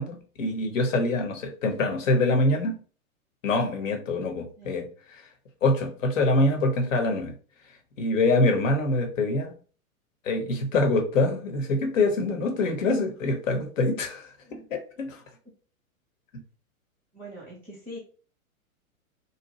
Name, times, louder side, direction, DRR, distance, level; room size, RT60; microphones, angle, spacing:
voice 1, 0.0-2.8 3.4-5.2 5.6-7.3 8.0-9.5 10.2-14.3 14.7-15.2, left 2 dB, 65° left, 4 dB, 1.0 m, -25 dB
voice 2, 17.1-18.0, equal, 5° right, -2 dB, 0.7 m, -42 dB
2.7 x 2.3 x 3.0 m, 0.40 s
figure-of-eight pair, 105°, 42 cm